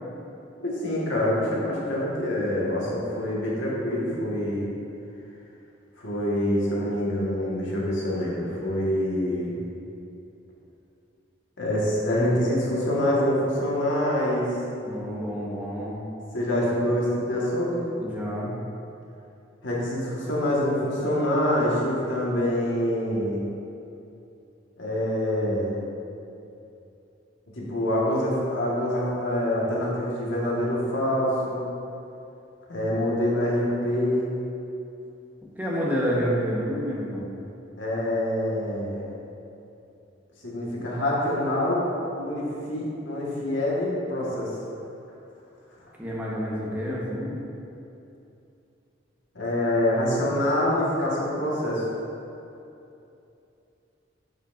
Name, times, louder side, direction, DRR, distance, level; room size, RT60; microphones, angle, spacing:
voice 1, 0.6-4.7 6.0-9.5 11.6-14.6 16.3-17.9 19.6-23.4 24.8-25.8 27.5-31.7 32.7-34.3 37.8-39.1 40.4-41.9 42.2-44.5 49.3-51.8, left 1 dB, 80° left, -5 dB, 1.6 m, -25 dB
voice 2, 14.8-16.0 18.0-18.5 35.6-37.3 46.0-47.4, equal, 10° right, -6 dB, 1.1 m, -28 dB
10.0 x 5.5 x 2.6 m, 2.7 s
head